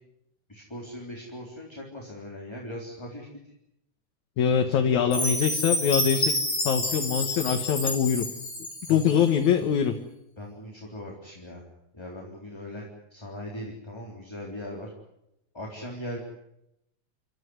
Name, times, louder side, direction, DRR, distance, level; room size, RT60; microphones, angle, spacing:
voice 1, 0.5-3.5 4.5-5.2 8.9-9.2 10.4-11.7 11.9-14.9 15.5-16.2, equal, 10° left, -2 dB, 3.6 m, -39 dB
voice 2, 4.4-6.4 6.6-8.3 8.9-9.9, left 8 dB, 75° left, 4 dB, 2.7 m, -23 dB
Chime, 5.1-9.2, left 1 dB, 30° left, 6.7 m, -29 dB
29.5 x 14.0 x 9.6 m, 0.84 s
omnidirectional pair, 3.4 m